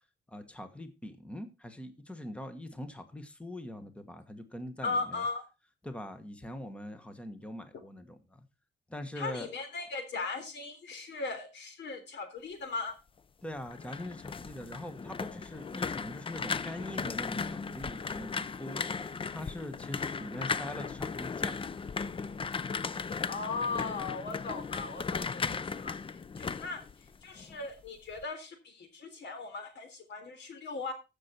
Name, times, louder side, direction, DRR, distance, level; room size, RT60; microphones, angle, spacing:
voice 1, 0.3-5.2 5.8-8.4 8.9-9.5 13.4-21.6, left 1 dB, 5° left, 9 dB, 1.3 m, -42 dB
voice 2, 4.8-5.4 9.2-13.0 20.4-20.9 23.3-26.0 26.3-26.8 27.2-30.9, left 3 dB, 85° left, 8 dB, 3.4 m, -38 dB
sound 1, 13.5-27.5 27.9-28.2, left 5 dB, 30° left, 0.5 m, -36 dB
15.0 x 6.7 x 4.4 m, 0.29 s
wide cardioid pair, 140°, 18 cm